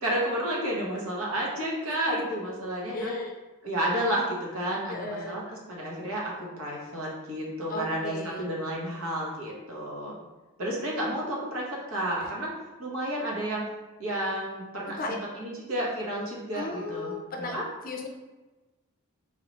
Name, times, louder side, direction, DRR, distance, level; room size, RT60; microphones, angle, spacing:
voice 1, 0.0-3.1 3.6-10.2 10.6-12.5 12.8-13.7 14.0-17.6, right 1 dB, 80° right, -3 dB, 1.1 m, -31 dB
voice 2, 2.9-3.4 4.9-5.4 7.7-8.4 14.9-15.2 16.5-17.6 17.8-18.1, left 2 dB, 40° left, 2 dB, 0.4 m, -35 dB
3.7 x 2.8 x 3.0 m, 1.1 s
head